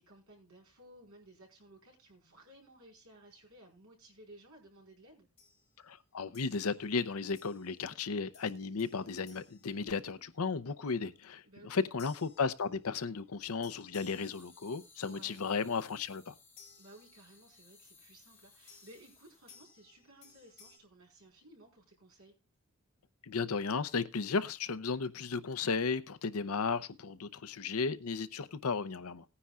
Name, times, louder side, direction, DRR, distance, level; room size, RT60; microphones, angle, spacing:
voice 1, 0.0-5.3 11.4-11.9 15.1-15.4 16.8-22.3, right 1 dB, 75° right, 4.8 m, -57 dB
sound 1, 5.4-5.8 6.3-6.9 7.4-7.9 8.3-10.5 12.0-13.2 13.6-15.1 16.6-17.6 18.7-20.8, left 5 dB, 30° left, 5.4 m, -61 dB
voice 2, 5.8-16.3 23.2-29.2, left 4 dB, 80° left, 0.7 m, -35 dB
sound 2, 14.0-19.7, left 4 dB, 10° left, 3.0 m, -62 dB
18.5 x 9.9 x 2.4 m
head